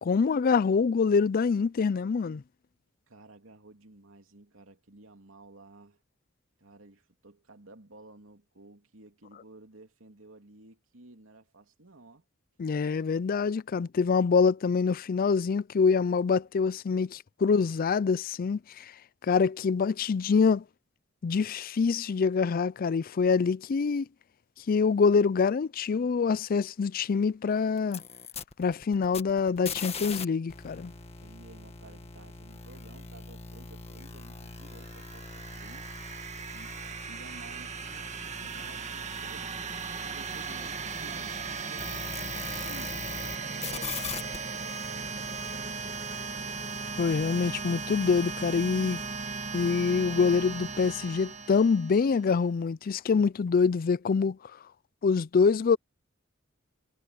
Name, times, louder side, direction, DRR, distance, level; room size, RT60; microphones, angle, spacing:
voice 1, 0.0-2.4 12.6-18.9 19.2-20.6 21.2-24.1 24.7-28.0 28.6-30.9 47.0-49.0 49.5-54.4 55.0-55.8, left 5 dB, 45° left, 0.4 m, -25 dB
voice 2, 3.1-6.0 6.6-12.2 31.2-35.9 36.5-36.8 37.1-42.0 42.4-43.1 43.4-46.6, right 2 dB, 85° right, 2.9 m, -53 dB
sound 1, 27.8-30.2 30.5-43.4 43.6-44.4, left 5 dB, 30° left, 1.7 m, -42 dB
sound 2, 34.6-52.3, right 5 dB, 35° right, 1.7 m, -37 dB
head